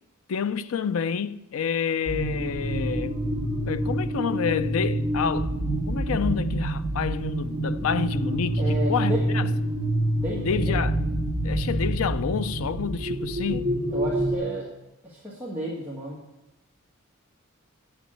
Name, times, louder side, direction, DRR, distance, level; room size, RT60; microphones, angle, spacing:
voice 1, 0.3-3.2 3.7-5.5 5.9-9.5 10.4-11.0 11.4-13.7, left 7 dB, 90° left, 0.5 m, -28 dB
sound 1, 2.1-14.4, right 1 dB, 30° right, 2.0 m, -27 dB
voice 2, 8.6-9.2 9.9-10.7 13.9-14.7 15.0-16.2, equal, 10° right, 1.7 m, -33 dB
7.9 x 7.3 x 8.6 m
head